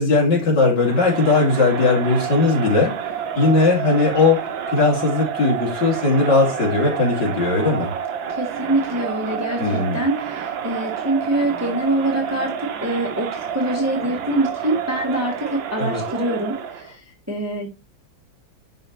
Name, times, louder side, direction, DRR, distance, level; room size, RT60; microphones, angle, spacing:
voice 1, 0.0-2.9 3.3-7.9 9.6-10.0 15.8-16.0, left 3 dB, 60° left, -1 dB, 3.1 m, -18 dB
Crowd, 0.8-16.9, right 8 dB, 90° right, 1.6 m, -29 dB
voice 2, 8.3-17.0 17.3-17.7, right 1 dB, 10° right, 1 dB, 1.2 m, -24 dB
11.0 x 4.0 x 3.0 m, 0.26 s
omnidirectional pair, 2.1 m